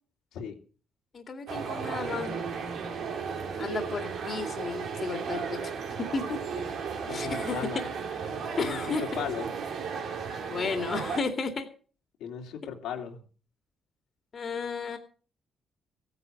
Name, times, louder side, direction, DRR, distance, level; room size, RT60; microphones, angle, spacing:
voice 1, 1.1-2.4 3.6-5.7 6.0-6.4 7.1-7.6 8.6-9.0 10.5-11.7 14.3-15.0, left 4 dB, 45° left, 5 dB, 2.4 m, -33 dB
sound 1, 1.5-11.2, right 6 dB, 70° right, 3.1 m, -34 dB
voice 2, 7.1-7.8 8.6-9.5 12.2-13.2, left 8 dB, 90° left, 0 dB, 3.2 m, -36 dB
15.5 x 9.7 x 6.6 m, 0.41 s
cardioid pair, 90°, 0 cm